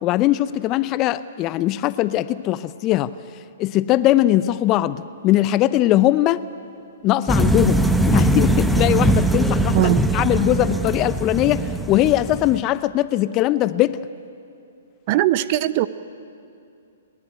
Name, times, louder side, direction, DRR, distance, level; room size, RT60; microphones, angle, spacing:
voice 1, 0.0-3.1 3.6-6.4 7.0-14.0, left 14 dB, 30° left, 15 dB, 0.6 m, -20 dB
sound 1, 7.3-12.6, right 1 dB, ahead, 0.9 m, -20 dB
voice 2, 15.1-15.9, right 15 dB, 40° right, 16 dB, 0.7 m, -19 dB
29.5 x 11.0 x 9.9 m, 2.5 s
figure-of-eight pair, 120°, 0 cm